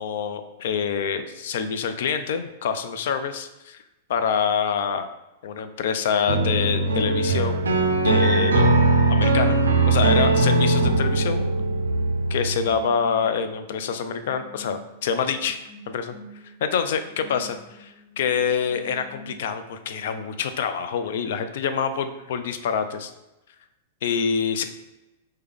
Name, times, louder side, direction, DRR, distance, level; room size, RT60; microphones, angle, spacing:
voice 1, 0.0-3.8 4.1-5.1 5.4-7.6 8.0-9.6 9.9-11.5 12.3-15.6 15.9-16.1 16.6-23.1 24.0-24.6, left 7 dB, 65° left, 9 dB, 0.3 m, -26 dB
sound 1, 6.3-12.7, right 2 dB, 90° right, 0.3 m, -20 dB
sound 2, 8.2-19.9, right 1 dB, 5° right, 0.5 m, -43 dB
3.4 x 2.2 x 3.5 m, 0.97 s
hypercardioid pair, 115°, 0 cm